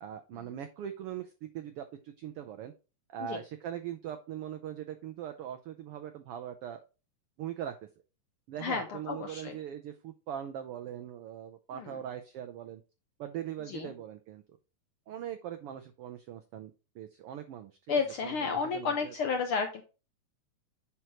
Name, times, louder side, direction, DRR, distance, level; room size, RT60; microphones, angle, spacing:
voice 1, 0.0-2.7 3.1-6.8 7.4-7.8 8.5-12.8 13.2-14.4 15.1-19.1, right 10 dB, 85° right, 8 dB, 1.2 m, -41 dB
voice 2, 8.6-9.6 11.7-12.0 13.7-13.9 17.9-19.8, left 5 dB, 70° left, 5 dB, 1.3 m, -32 dB
7.8 x 5.9 x 3.0 m, 0.31 s
omnidirectional pair, 3.4 m